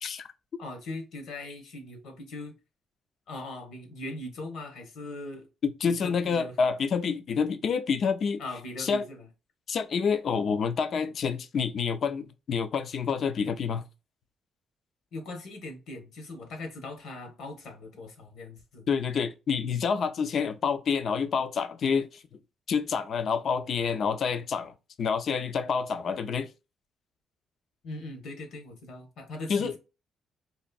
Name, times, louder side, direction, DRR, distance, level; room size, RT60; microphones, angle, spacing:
voice 1, 0.6-2.5 3.3-5.5 5.8-6.5 8.4-9.3 15.1-18.9 27.8-29.8, left 2 dB, 75° left, 1.2 m, -40 dB
voice 2, 5.6-8.4 8.8-9.0 9.7-13.8 18.9-22.2 22.7-26.5 29.5-29.7, left 6 dB, 60° left, 0.4 m, -28 dB
4.1 x 2.5 x 2.3 m
cardioid pair, 90°, 0 cm